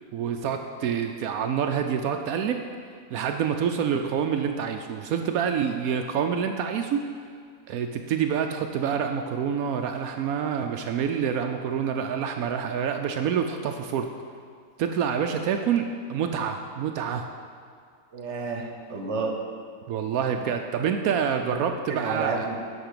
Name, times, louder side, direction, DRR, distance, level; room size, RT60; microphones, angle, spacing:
voice 1, 0.1-2.6 3.1-7.1 7.7-14.1 14.8-17.2 19.9-22.5, right 7 dB, 80° right, 5 dB, 1.0 m, -27 dB
voice 2, 18.1-19.3 21.6-22.7, right 4 dB, 55° right, 2 dB, 1.3 m, -31 dB
10.5 x 4.8 x 6.7 m, 2.2 s
omnidirectional pair, 1.5 m